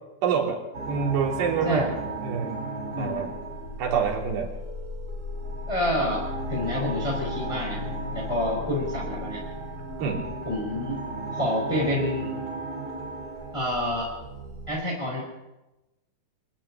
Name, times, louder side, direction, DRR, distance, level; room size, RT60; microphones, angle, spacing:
voice 1, 0.2-0.6 0.9-1.9 2.2-2.7 3.0-3.3 3.8-4.5 10.0-10.3, right 6 dB, 70° right, 1 dB, 5.4 m, -26 dB
sound 1, 0.7-14.7, right 1 dB, 15° right, 6.1 m, -34 dB
voice 2, 2.9-3.3 5.7-7.8 8.1-9.4 10.5-11.0 11.3-12.4 13.5-14.1 14.7-15.2, left 1 dB, 5° left, -3 dB, 4.5 m, -28 dB
25.0 x 10.5 x 9.9 m, 0.98 s
omnidirectional pair, 5.0 m